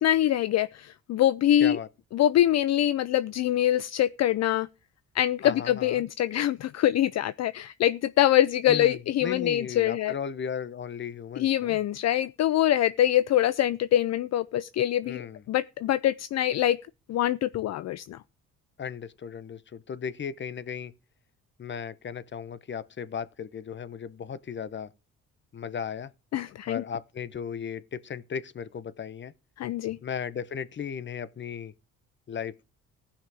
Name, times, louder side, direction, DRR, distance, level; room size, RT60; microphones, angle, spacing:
voice 1, 0.0-1.8 2.1-4.7 5.1-10.1 11.4-15.2 15.5-16.8 17.1-18.2 26.3-26.8 29.6-30.0, left 12 dB, 60° left, 0.5 m, -24 dB
voice 2, 5.4-6.0 8.7-11.8 15.1-15.4 18.8-20.9 21.6-24.9 25.5-26.1 26.7-29.3 30.0-31.7 32.3-32.6, left 7 dB, 40° left, 0.9 m, -36 dB
15.5 x 5.8 x 4.8 m
cardioid pair, 90°, 30 cm